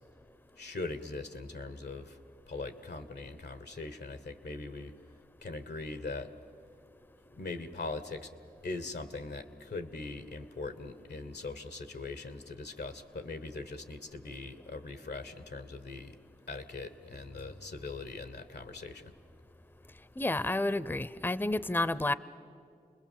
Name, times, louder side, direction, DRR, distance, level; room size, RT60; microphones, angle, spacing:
voice 1, 0.6-2.2 2.5-4.9 5.4-6.3 7.3-8.3 8.6-16.1 16.5-19.1, left 3 dB, 85° left, 10 dB, 1.2 m, -41 dB
voice 2, 20.2-22.1, left 2 dB, 10° left, 16 dB, 0.6 m, -30 dB
28.0 x 21.0 x 7.5 m, 2.5 s
cardioid pair, 40°, 17 cm